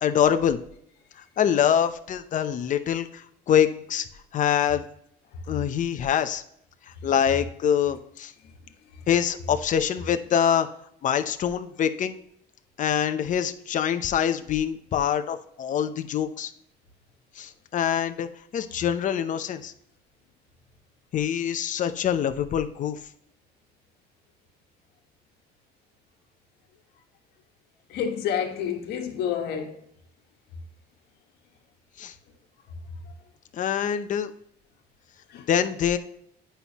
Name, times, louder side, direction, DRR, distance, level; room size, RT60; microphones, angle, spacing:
voice 1, 0.0-0.6 1.4-4.1 4.3-4.8 5.5-6.4 7.0-8.3 9.1-10.7 11.0-12.2 12.8-16.5 17.4-19.7 21.1-23.0 32.0-32.1 33.5-34.3 35.5-36.0, left 9 dB, 50° left, 0.7 m, -25 dB
voice 2, 27.9-29.7 35.3-35.5, left 8 dB, 75° left, 1.5 m, -29 dB
9.2 x 5.7 x 2.9 m
cardioid pair, 110°, 17 cm